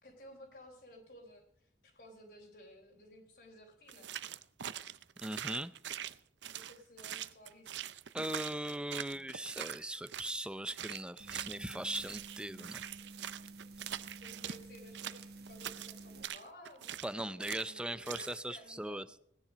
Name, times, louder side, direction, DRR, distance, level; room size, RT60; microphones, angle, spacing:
voice 1, 0.0-4.1 6.5-7.9 14.2-19.0, equal, 60° left, -1 dB, 3.7 m, -56 dB
sound 1, 3.9-10.4 10.7-14.6 14.9-17.1 17.4-17.7 18.0-18.4, right 10 dB, 90° right, 0.6 m, -43 dB
voice 2, 5.2-5.7 8.1-12.8 17.0-19.1, right 1 dB, 5° right, 13 dB, 0.5 m, -39 dB
sound 2, 11.2-16.2, right 3 dB, 65° right, 1.5 m, -51 dB
19.0 x 10.5 x 5.1 m, 0.72 s
head